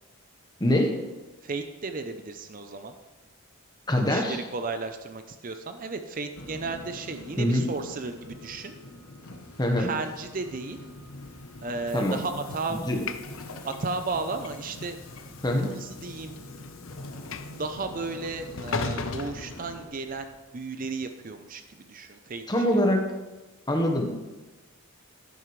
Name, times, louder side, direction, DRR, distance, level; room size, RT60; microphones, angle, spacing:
voice 1, 0.6-1.0 3.9-4.4 7.4-7.6 9.6-9.9 11.9-12.2 12.9-13.0 15.4-15.7 22.5-23.0 23.7-24.1, left 1 dB, 20° left, 3 dB, 1.1 m, -23 dB
voice 2, 1.4-3.0 4.1-8.7 9.8-10.8 11.6-12.8 13.6-15.0 15.7-16.4 17.5-22.4 22.7-22.8, right 3 dB, 40° right, 8 dB, 0.5 m, -34 dB
sound 1, 6.4-19.9, left 1 dB, 90° left, 1.3 m, -44 dB
Train / Sliding door, 11.0-20.3, left 4 dB, 60° left, 0.6 m, -39 dB
11.0 x 10.5 x 3.2 m, 1.2 s
head